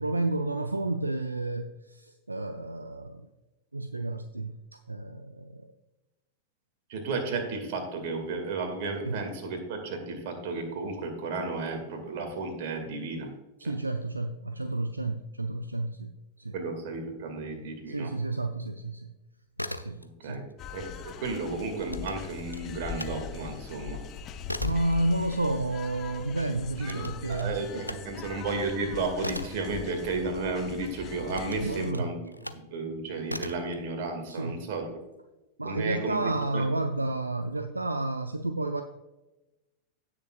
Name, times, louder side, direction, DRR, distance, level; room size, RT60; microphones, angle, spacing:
voice 1, 0.0-3.3 3.7-5.7 9.0-9.2 13.6-16.5 17.9-19.1 19.8-20.5 24.6-27.6 28.2-28.3 31.6-32.1 34.3-34.6 35.6-38.8, right 2 dB, 80° right, 9 dB, 0.4 m, -31 dB
voice 2, 6.9-13.3 16.5-18.1 20.0-20.5 20.7-24.0 26.8-32.2 32.5-35.0 35.6-36.7, right 3 dB, 50° right, 5 dB, 2.1 m, -33 dB
sound 1, 19.4-20.4 20.7-23.2 23.6-30.6 31.2-32.7 33.2-33.7, equal, 90° left, 0.4 m, -40 dB
sound 2, 20.6-31.9, left 7 dB, 30° left, 0.7 m, -41 dB
17.0 x 6.6 x 2.4 m, 1.0 s
figure-of-eight pair, 90°, 0 cm